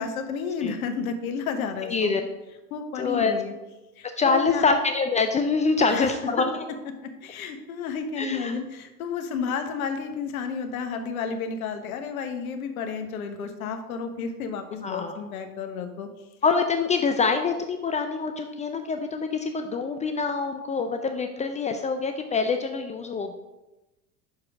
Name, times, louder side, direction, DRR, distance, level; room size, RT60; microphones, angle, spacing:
voice 1, 0.0-2.1 2.7-3.5 4.0-4.6 5.9-6.1 7.0-16.1, left 5 dB, 70° left, 7 dB, 1.1 m, -31 dB
voice 2, 1.8-2.2 3.0-3.3 4.2-6.6 8.2-8.6 14.8-15.1 16.4-23.3, left 4 dB, 15° left, 6 dB, 0.4 m, -25 dB
6.2 x 4.7 x 5.9 m, 1.0 s
hypercardioid pair, 80°, 45 cm